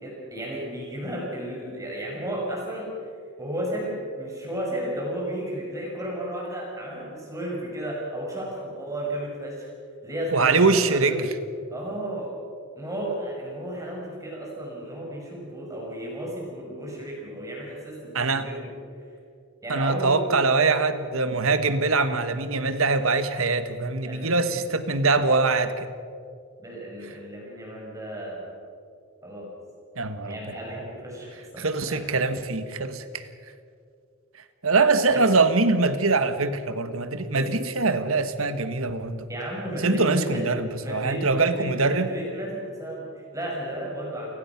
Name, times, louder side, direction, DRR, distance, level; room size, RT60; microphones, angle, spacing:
voice 1, 0.0-2.9 3.4-9.7 10.0-11.2 11.7-12.3 12.8-18.7 19.6-20.3 24.1-24.4 26.6-28.6 29.2-29.5 30.3-32.0 35.1-35.2 37.3-37.5 39.3-40.4 40.8-44.4, right 1 dB, 15° right, -2 dB, 5.6 m, -33 dB
voice 2, 10.3-11.3 18.1-18.5 19.7-25.9 30.0-30.4 31.6-33.3 34.6-39.3 39.8-42.2, right 3 dB, 75° right, 10 dB, 1.5 m, -23 dB
29.0 x 17.0 x 6.0 m, 2.3 s
head